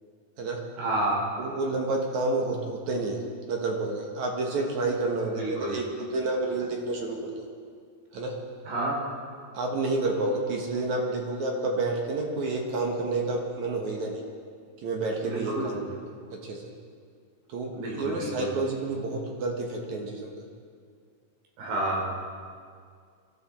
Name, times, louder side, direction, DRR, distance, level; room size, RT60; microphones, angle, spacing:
voice 1, 0.8-1.3 5.4-5.8 8.7-8.9 15.3-15.9 17.7-18.6 21.6-22.1, right 2 dB, 90° right, -2 dB, 5.2 m, -30 dB
voice 2, 1.4-3.2 3.5-7.3 8.1-8.4 9.5-14.2 14.8-15.8 16.3-16.7 17.5-20.3, right 2 dB, 60° right, 1 dB, 2.4 m, -29 dB
23.5 x 13.5 x 4.4 m, 2.2 s
omnidirectional pair, 4.4 m